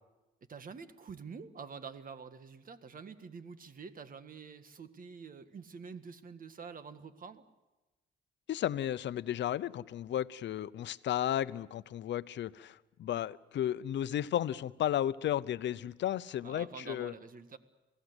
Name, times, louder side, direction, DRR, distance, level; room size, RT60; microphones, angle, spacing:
voice 1, 0.5-7.4 16.4-17.6, right 5 dB, 45° right, 10 dB, 1.7 m, -47 dB
voice 2, 8.5-17.1, left 11 dB, 65° left, 15 dB, 0.8 m, -34 dB
28.0 x 17.0 x 8.1 m, 1.1 s
cardioid pair, 90°, 20 cm